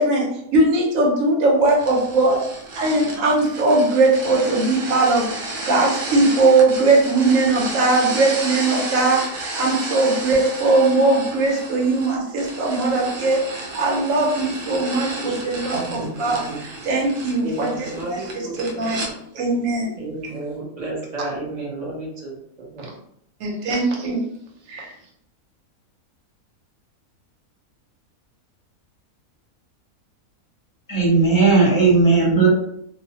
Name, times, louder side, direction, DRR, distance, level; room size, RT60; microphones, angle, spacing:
voice 1, 0.0-2.4 2.7-18.2 18.6-19.9 22.8-22.9 23.4-24.2 24.7-24.9, right 2 dB, 70° right, -1 dB, 1.1 m, -20 dB
sound 1, 1.6-19.1, right 2 dB, 90° right, 1.2 m, -32 dB
voice 2, 15.7-16.6 17.4-19.1 20.0-22.9, right 2 dB, 45° right, -3 dB, 0.5 m, -32 dB
voice 3, 30.9-32.5, right 4 dB, 20° left, -5 dB, 0.5 m, -16 dB
2.6 x 2.0 x 2.7 m, 0.72 s
omnidirectional pair, 1.5 m